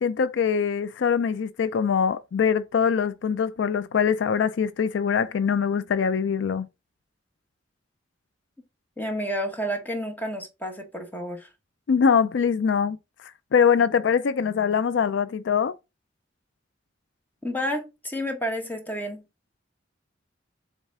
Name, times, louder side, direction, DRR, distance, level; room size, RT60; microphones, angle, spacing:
voice 1, 0.0-6.7 11.9-13.0 13.5-15.7, left 6 dB, 70° left, 0.4 m, -23 dB
voice 2, 9.0-11.5 17.4-19.2, equal, 10° left, 1.4 m, -30 dB
7.2 x 3.6 x 3.6 m
head